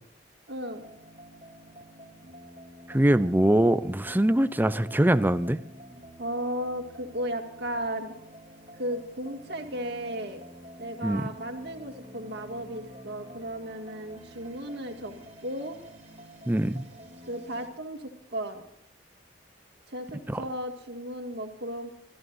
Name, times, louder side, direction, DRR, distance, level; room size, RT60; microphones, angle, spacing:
voice 1, 0.5-0.8 6.2-8.1 8.8-10.4 10.8-15.1 15.4-15.8 17.3-18.6 19.9-21.9, equal, 65° right, 3 dB, 2.2 m, -35 dB
sound 1, 0.7-17.7, equal, 35° right, 2.9 m, -48 dB
voice 2, 2.9-5.6 11.0-11.2 16.5-16.8 20.3-20.4, right 1 dB, 10° right, 12 dB, 0.6 m, -23 dB
27.0 x 14.0 x 2.7 m, 0.72 s
head